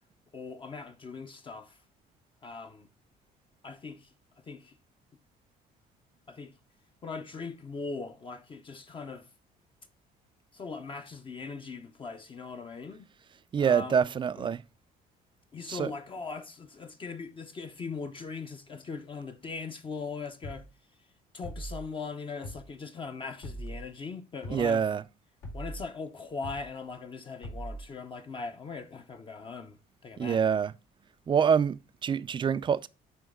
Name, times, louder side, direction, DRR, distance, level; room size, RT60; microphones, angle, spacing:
voice 1, 0.3-1.8 2.4-2.9 3.6-4.8 6.3-6.5 7.0-9.3 10.5-13.1 13.6-14.1 14.4-14.6 15.5-20.7 21.3-24.9 25.5-30.4, left 4 dB, 30° left, 0.7 m, -40 dB
voice 2, 13.5-14.6 15.7-15.9 24.5-25.0 30.2-30.7 31.3-32.9, right 7 dB, 30° right, 0.4 m, -26 dB
sound 1, 20.4-20.7 21.4-21.8 22.4-22.7 23.4-23.8 24.4-24.7 25.4-25.8 26.4-26.7 27.4-27.8, right 1 dB, 85° left, 3.5 m, -40 dB
8.8 x 3.1 x 3.5 m
cardioid pair, 110°, 17 cm